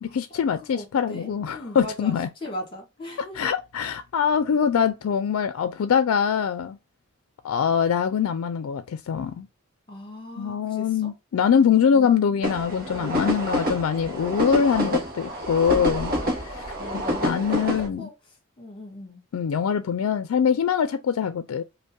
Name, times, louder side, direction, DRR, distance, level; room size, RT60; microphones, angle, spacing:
voice 1, 0.0-2.3 3.2-6.8 7.4-9.5 10.4-16.7 16.9-18.1 19.3-21.6, left 7 dB, 80° left, 0.4 m, -23 dB
voice 2, 0.5-2.1 2.4-3.4 9.9-11.1 16.7-18.1 18.6-19.2, left 1 dB, 25° left, 1.4 m, -39 dB
sound 1, 12.4-17.9, equal, 45° right, 1.0 m, -28 dB
5.1 x 2.1 x 2.2 m
head